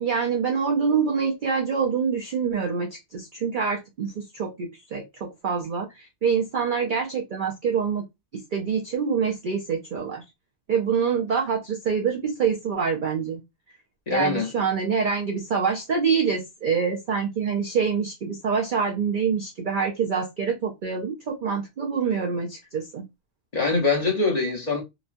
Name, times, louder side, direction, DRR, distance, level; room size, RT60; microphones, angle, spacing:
voice 1, 0.0-8.0 8.3-10.2 10.7-13.4 14.1-23.0, right 6 dB, 70° right, 0.4 m, -26 dB
voice 2, 14.1-14.5 23.5-24.8, left 4 dB, 35° left, 0.8 m, -23 dB
2.9 x 2.2 x 2.4 m
omnidirectional pair, 1.5 m